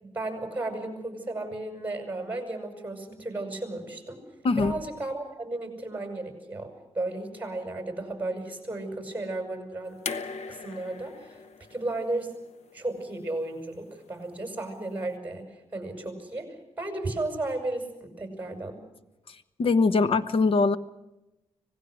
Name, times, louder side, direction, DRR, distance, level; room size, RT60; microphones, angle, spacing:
voice 1, 0.0-4.2 4.5-10.0 10.5-11.4 11.7-12.3 12.7-15.5 15.7-18.8, right 2 dB, 15° right, 5 dB, 6.0 m, -34 dB
sound 1, 10.0-13.2 14.4-14.5, left 5 dB, 80° left, 1.3 m, -39 dB
voice 2, 19.6-20.8, left 4 dB, 55° left, 12 dB, 1.1 m, -22 dB
26.0 x 18.5 x 6.3 m, 0.97 s
wide cardioid pair, 155°, 11 cm